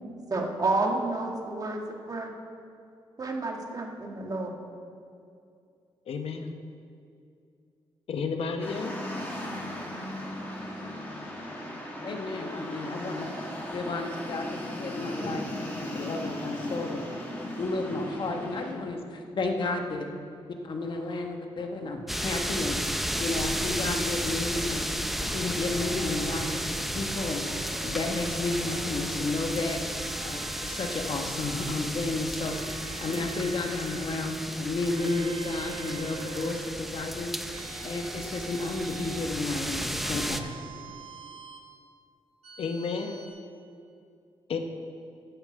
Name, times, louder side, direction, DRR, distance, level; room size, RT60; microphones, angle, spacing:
voice 1, 0.3-2.3 3.2-4.5, right 2 dB, 35° right, 2 dB, 1.6 m, -30 dB
voice 2, 6.1-6.5 8.1-8.9 42.6-43.2 44.5-44.6, left 5 dB, 70° left, 6 dB, 1.0 m, -31 dB
sound 1, 8.6-18.7, left 1 dB, 20° left, 2.2 m, -37 dB
voice 3, 12.0-13.3 13.7-17.0 17.6-20.1 20.6-22.8 23.2-24.9 25.2-27.4 27.8-29.8 30.2-32.5 33.0-37.3 37.7-40.5, left 2 dB, 50° left, 4 dB, 1.2 m, -32 dB
sound 2, 22.1-40.4, equal, ahead, 0.6 m, -33 dB
sound 3, 25.7-26.7 27.5-29.2 29.9-31.8 32.5-34.2 34.9-36.8 37.5-39.3 40.0-41.7 42.4-43.3, right 5 dB, 85° right, 1.2 m, -45 dB
10.5 x 7.3 x 7.6 m, 2.5 s
cardioid pair, 110°, 10 cm